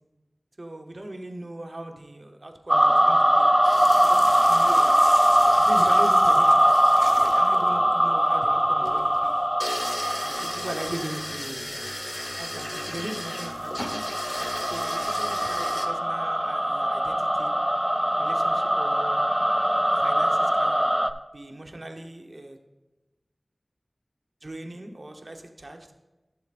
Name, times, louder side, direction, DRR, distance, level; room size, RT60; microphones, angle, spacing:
voice 1, 0.6-3.5 4.0-4.9 5.4-6.7 7.0-9.3 10.2-11.6 12.3-14.1 14.7-17.5 18.2-19.3 19.9-21.0 21.3-22.6 24.4-25.9, right 1 dB, 60° right, 4 dB, 1.0 m, -39 dB
sound 1, 2.7-11.3 12.4-21.1, equal, 10° right, 0.4 m, -22 dB
sound 2, 3.6-15.9, left 1 dB, 20° left, 1.2 m, -36 dB
14.5 x 7.1 x 2.5 m, 1.1 s
wide cardioid pair, 55°, 0 cm